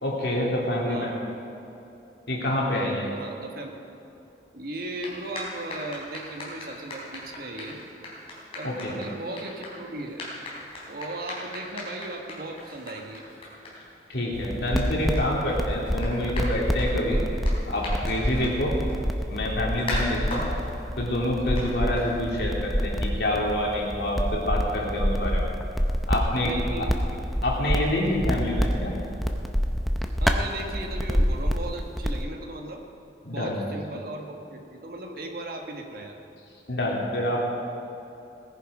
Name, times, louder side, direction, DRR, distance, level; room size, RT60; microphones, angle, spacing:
voice 1, 0.0-1.1 2.3-3.1 8.6-8.9 14.1-17.2 17.7-18.8 19.3-20.5 21.0-25.4 26.1-26.5 27.4-28.9 33.2-33.8 36.7-37.4, left 1 dB, 70° left, -3 dB, 2.8 m, -27 dB
voice 2, 0.9-1.2 3.1-3.7 4.5-7.8 8.5-10.2 10.9-13.3 18.3-18.5 26.4-27.2 30.2-32.8 33.3-36.2, right 2 dB, 55° right, 2 dB, 1.5 m, -37 dB
sound 1, 4.8-22.5, left 1 dB, 30° left, 3.6 m, -40 dB
sound 2, 14.3-32.2, equal, ahead, 0.6 m, -28 dB
18.0 x 10.5 x 4.9 m, 2.9 s
head